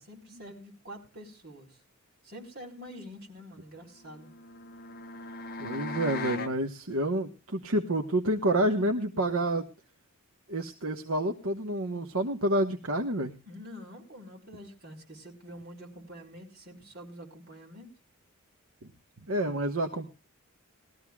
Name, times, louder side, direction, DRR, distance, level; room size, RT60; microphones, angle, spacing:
voice 1, 0.0-1.8 2.2-4.3 13.5-17.9, equal, 45° right, 0 dB, 4.2 m, -46 dB
sound 1, 4.0-6.6, left 3 dB, 45° left, 1.1 m, -38 dB
voice 2, 5.6-9.7 10.5-13.3 19.3-20.1, right 1 dB, 70° right, 4 dB, 1.2 m, -28 dB
20.5 x 14.0 x 2.3 m, 0.30 s
head